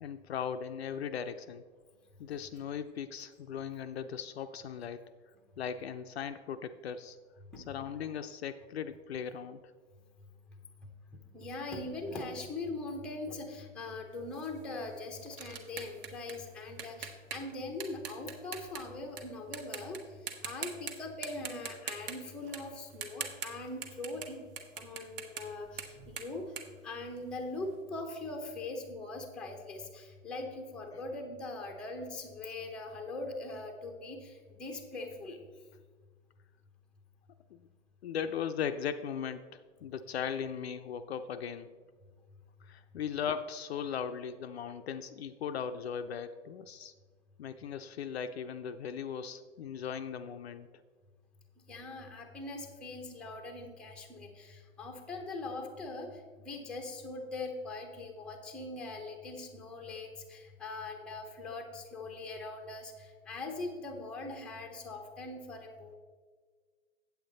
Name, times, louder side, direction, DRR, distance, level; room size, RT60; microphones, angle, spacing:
voice 1, 0.0-1.6 2.2-5.0 5.6-7.2 7.6-9.6 30.9-31.0 37.5-37.6 38.0-41.7 42.6-46.9 47.4-50.7, left 7 dB, 55° left, 9 dB, 0.5 m, -38 dB
voice 2, 11.3-20.0 20.2-24.4 24.8-26.5 26.8-35.4 51.7-65.9, left 2 dB, ahead, 2 dB, 0.6 m, -41 dB
sound 1, 14.3-19.2 19.5-20.0 20.3-20.9 21.2-24.3 24.6-27.6, right 7 dB, 45° right, 1.1 m, -43 dB
8.4 x 7.9 x 3.8 m, 1.5 s
hypercardioid pair, 120°, 39 cm